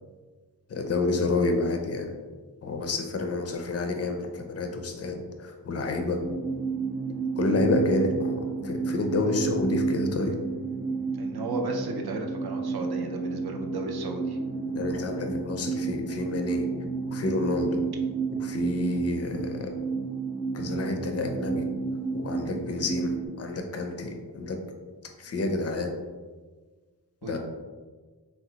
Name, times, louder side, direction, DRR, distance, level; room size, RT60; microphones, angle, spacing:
voice 1, 0.7-2.1 2.6-6.2 7.4-10.4 14.7-16.7 17.1-17.8 18.4-19.7 20.5-21.6 22.1-24.6 25.2-25.9 27.2-27.4, left 3 dB, 40° left, 4 dB, 0.4 m, -29 dB
sound 1, 6.2-23.3, right 5 dB, 25° right, 0.9 m, -31 dB
voice 2, 11.2-14.4 27.2-27.4, right 3 dB, 65° right, 2 dB, 0.5 m, -34 dB
3.9 x 2.0 x 2.8 m, 1.4 s
wide cardioid pair, 90°, 41 cm